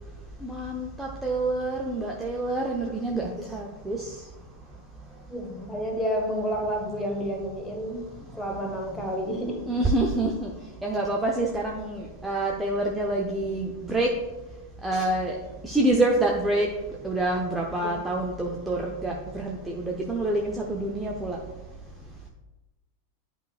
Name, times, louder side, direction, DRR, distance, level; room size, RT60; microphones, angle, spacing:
voice 1, 0.4-4.1 9.7-10.5 10.8-14.1 14.8-15.4 15.6-16.7 17.0-21.4, right 2 dB, 5° right, -1 dB, 0.8 m, -27 dB
voice 2, 5.3-8.1 8.3-9.6, equal, 10° left, 1 dB, 1.4 m, -30 dB
11.0 x 4.9 x 2.5 m, 1.1 s
figure-of-eight pair, 90°, 0 cm